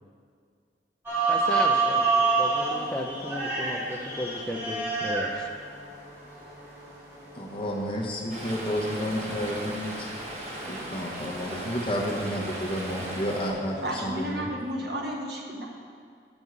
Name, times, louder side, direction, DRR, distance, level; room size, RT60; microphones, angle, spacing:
sound 1, 1.1-14.3, right 4 dB, 15° right, 1.5 m, -30 dB
voice 1, 1.3-5.5, left 1 dB, 5° left, 1 dB, 0.5 m, -35 dB
voice 2, 7.3-10.1 10.6-14.5, equal, 30° left, -3 dB, 1.1 m, -31 dB
Stream, 8.3-13.5, right 1 dB, 35° right, 1.2 m, -37 dB
voice 3, 13.8-15.7, equal, 60° right, -2 dB, 1.4 m, -32 dB
8.0 x 5.4 x 6.1 m, 2.1 s
head